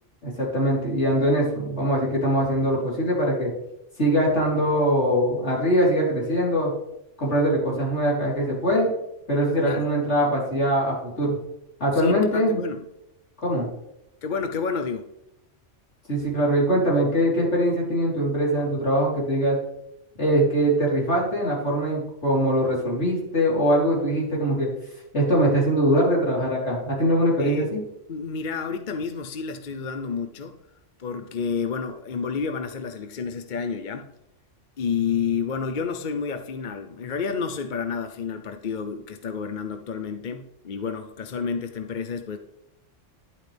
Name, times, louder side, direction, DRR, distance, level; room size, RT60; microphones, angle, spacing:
voice 1, 0.2-3.5 4.0-6.7 7.2-8.9 9.3-11.4 11.8-12.7 13.4-13.7 16.1-19.6 20.2-24.7 25.1-27.8, equal, 65° left, -4 dB, 4.3 m, -22 dB
voice 2, 11.9-12.8 14.2-15.1 27.4-27.7 28.1-30.5 31.0-34.1 34.8-42.4, left 6 dB, 45° left, 7 dB, 0.8 m, -30 dB
12.0 x 11.5 x 3.5 m, 0.84 s
omnidirectional pair, 1.3 m